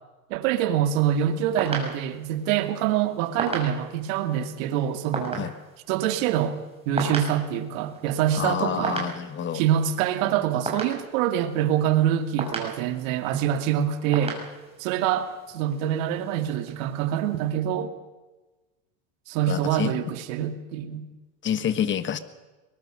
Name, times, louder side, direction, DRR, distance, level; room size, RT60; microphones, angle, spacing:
voice 1, 0.3-5.5 5.9-6.6 6.9-9.0 9.5-14.4 14.8-17.9 19.3-21.1, right 10 dB, 60° right, 8 dB, 2.5 m, -25 dB
sound 1, 1.0-17.5, right 3 dB, 15° right, 5.9 m, -38 dB
voice 2, 8.3-9.6 19.5-19.9 21.4-22.2, left 9 dB, 25° left, 13 dB, 1.4 m, -27 dB
22.0 x 21.0 x 6.4 m, 1.2 s
supercardioid pair, 120°, 44 cm